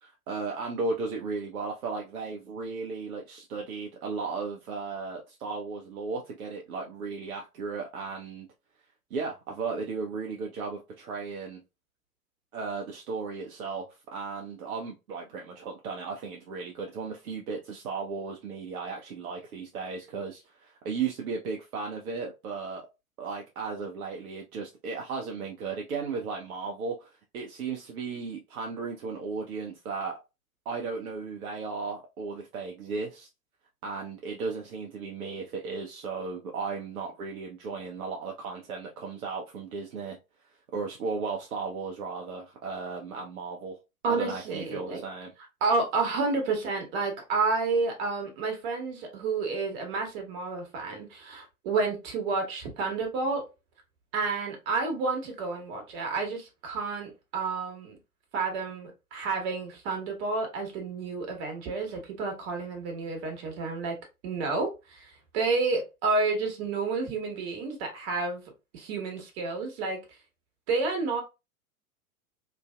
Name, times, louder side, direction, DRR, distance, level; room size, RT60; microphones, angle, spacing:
voice 1, 0.0-8.5 9.1-11.6 12.5-22.8 23.2-27.1 27.3-30.1 30.7-33.3 33.8-40.2 40.7-43.8 44.1-45.3, right 4 dB, 65° right, 0.7 m, -35 dB
voice 2, 44.0-45.0 45.6-53.4 54.1-58.0 58.3-64.0 64.2-68.4 68.7-70.0 70.7-71.2, right 4 dB, 45° right, 1.2 m, -30 dB
3.0 x 2.5 x 2.2 m
figure-of-eight pair, 100°, 45 cm